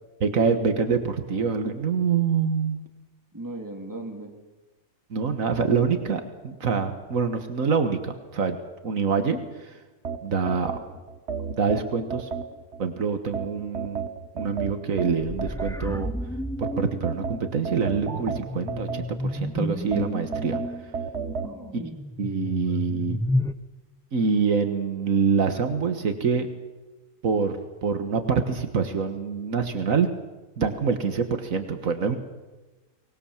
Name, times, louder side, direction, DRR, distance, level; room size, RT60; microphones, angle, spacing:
voice 1, 0.2-2.8 5.1-8.6 8.8-9.7 10.2-10.7 11.5-12.3 12.8-14.0 14.3-16.1 16.6-20.6 21.8-21.9 22.2-23.2 24.1-26.5 27.2-30.1 30.6-32.2, right 5 dB, 75° right, 7 dB, 1.8 m, -25 dB
voice 2, 3.3-4.3 10.8-11.0 21.3-21.9 22.4-23.2, right 2 dB, 15° right, 2 dB, 3.0 m, -40 dB
sound 1, 10.0-12.8 13.3-16.1 16.6-19.4 19.9-21.5, right 6 dB, 55° right, 1.4 m, -33 dB
sound 2, 15.2-23.5, left 1 dB, 5° left, 0.6 m, -32 dB
24.5 x 20.0 x 7.3 m, 1.2 s
omnidirectional pair, 1.4 m